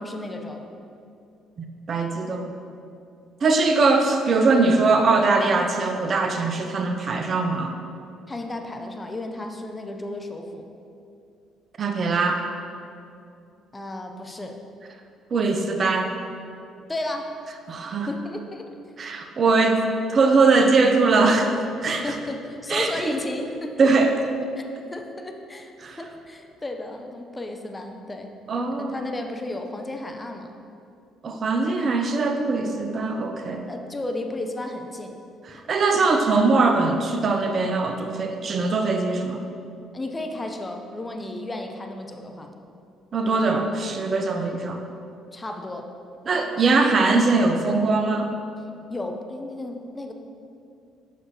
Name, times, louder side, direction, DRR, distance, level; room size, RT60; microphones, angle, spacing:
voice 1, 0.0-0.7 8.3-10.7 13.7-14.6 16.9-17.3 18.1-18.7 22.0-23.9 24.5-24.6 24.9-28.3 28.8-30.5 33.7-35.2 39.9-42.5 45.3-45.9 48.9-50.1, left 2 dB, 20° left, 4 dB, 0.7 m, -33 dB
voice 2, 1.6-2.5 3.4-7.7 11.8-12.4 15.3-16.1 17.7-18.1 19.0-19.8 20.1-21.5 21.8-22.2 22.7-22.9 23.8-24.1 25.8-26.0 28.5-28.9 31.2-33.6 35.5-39.4 43.1-44.8 46.3-48.3, right 3 dB, 45° right, 5 dB, 0.5 m, -21 dB
6.8 x 6.2 x 3.0 m, 2.6 s
hypercardioid pair, 50°, 0 cm